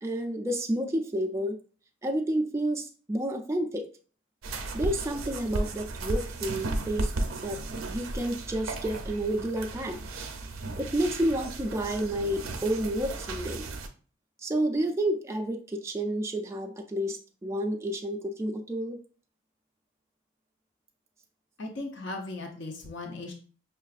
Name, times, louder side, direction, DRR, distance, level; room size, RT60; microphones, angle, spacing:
voice 1, 0.0-1.6 2.0-3.9 4.7-7.1 7.4-7.6 7.9-10.0 10.8-13.6 14.4-19.0, right 1 dB, 15° right, 3 dB, 0.3 m, -30 dB
sound 1, 4.4-13.9, right 2 dB, 80° right, 0.5 m, -35 dB
voice 2, 21.6-23.3, left 2 dB, 55° left, 3 dB, 0.7 m, -37 dB
5.6 x 2.4 x 2.4 m, 0.40 s
head